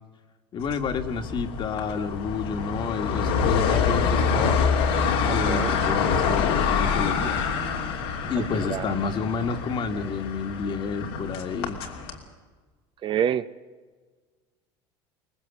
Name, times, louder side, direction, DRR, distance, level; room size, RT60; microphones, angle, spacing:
voice 1, 0.5-4.6 5.2-7.4 8.2-11.8, left 5 dB, 45° left, 6 dB, 1.8 m, -30 dB
sound 1, 0.7-12.2, left 6 dB, 85° left, 3.0 m, -26 dB
voice 2, 5.3-5.7 8.4-8.9 13.0-13.4, right 9 dB, 40° right, 13 dB, 0.6 m, -27 dB
23.5 x 20.0 x 7.2 m, 1.4 s
supercardioid pair, 100°, 12 cm